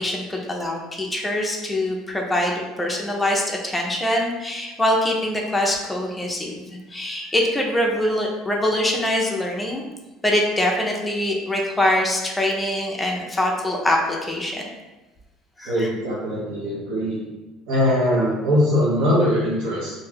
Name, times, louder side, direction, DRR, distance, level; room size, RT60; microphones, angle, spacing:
voice 1, 0.0-9.8 10.2-14.7 15.6-15.9, left 1 dB, 5° left, -1 dB, 0.4 m, -23 dB
voice 2, 15.6-17.2 17.7-19.9, equal, 75° right, -8 dB, 0.7 m, -21 dB
2.6 x 2.3 x 3.4 m, 1.1 s
cardioid pair, 145°, 0 cm